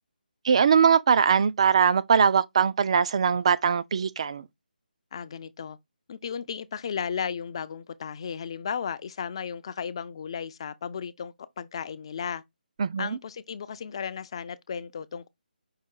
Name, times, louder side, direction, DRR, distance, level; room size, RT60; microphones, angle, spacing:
voice 1, 0.4-4.5 12.8-13.2, right 6 dB, 40° right, 0.3 m, -21 dB
voice 2, 5.1-5.8 6.1-12.4 13.0-15.3, left 7 dB, 35° left, 0.4 m, -35 dB
5.5 x 2.6 x 3.7 m
figure-of-eight pair, 160°, 5 cm